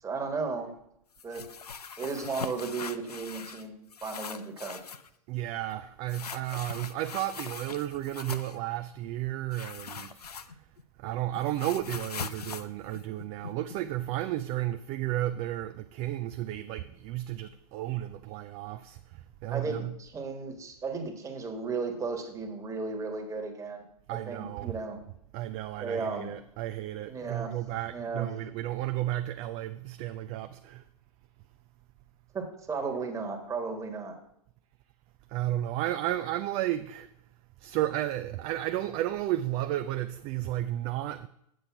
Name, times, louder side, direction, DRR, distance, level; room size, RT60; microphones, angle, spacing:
voice 1, 0.0-0.7 1.2-1.5 2.0-3.7 4.0-4.8 19.5-25.0 25.8-26.3 27.1-27.6 27.9-28.3 32.3-34.1, right 4 dB, 15° right, 1.5 m, -35 dB
sound 1, 1.2-3.6 3.9-5.1 6.1-8.6 9.5-10.8 11.1-13.8, left 6 dB, 90° left, 0.5 m, -41 dB
voice 2, 5.3-10.5 11.0-19.9 24.1-24.8 25.3-30.8 35.3-37.1 37.6-41.3, right 14 dB, 30° right, 0.4 m, -33 dB
7.8 x 6.4 x 5.8 m
hypercardioid pair, 105°, 19 cm